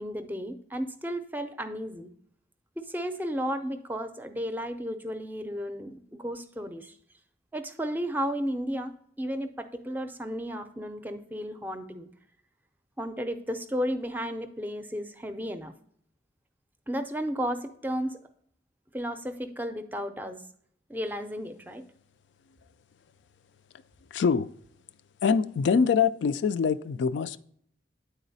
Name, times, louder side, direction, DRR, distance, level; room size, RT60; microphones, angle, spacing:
voice 1, 0.0-2.1 2.8-6.9 7.5-12.1 13.0-15.7 16.9-18.2 18.9-20.4 20.9-21.8, equal, 10° right, 0.5 m, -33 dB
voice 2, 24.1-24.5 25.2-27.4, left 6 dB, 90° left, 0.3 m, -24 dB
9.3 x 4.0 x 4.0 m
head